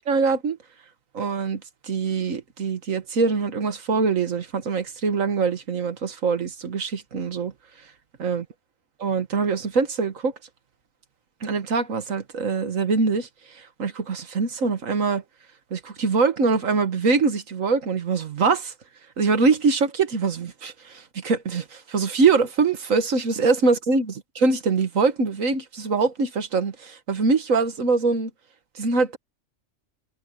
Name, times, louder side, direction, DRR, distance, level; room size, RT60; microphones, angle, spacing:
voice 1, 0.1-0.6 1.1-7.5 8.2-8.5 9.0-10.3 11.4-15.2 15.7-18.7 19.2-28.3 28.8-29.2, right 4 dB, 85° right, 1.9 m, -23 dB
omnidirectional pair, 1.3 m